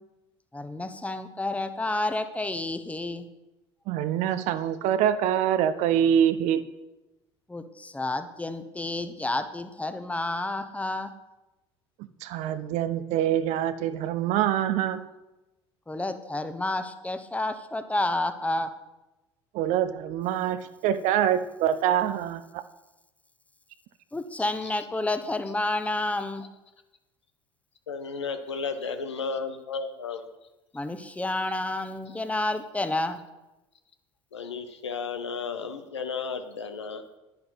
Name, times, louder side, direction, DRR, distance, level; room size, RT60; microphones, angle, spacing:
voice 1, 0.5-3.3 7.5-11.1 15.9-18.7 24.1-26.5 30.7-33.2, left 2 dB, 10° left, 10 dB, 1.0 m, -30 dB
voice 2, 3.9-6.6 12.2-15.0 19.5-22.6, right 10 dB, 55° right, 12 dB, 0.7 m, -25 dB
voice 3, 27.9-30.2 32.1-32.2 34.3-37.0, left 5 dB, 80° left, 8 dB, 0.9 m, -33 dB
10.5 x 10.5 x 4.1 m, 1.0 s
figure-of-eight pair, 65°, 14 cm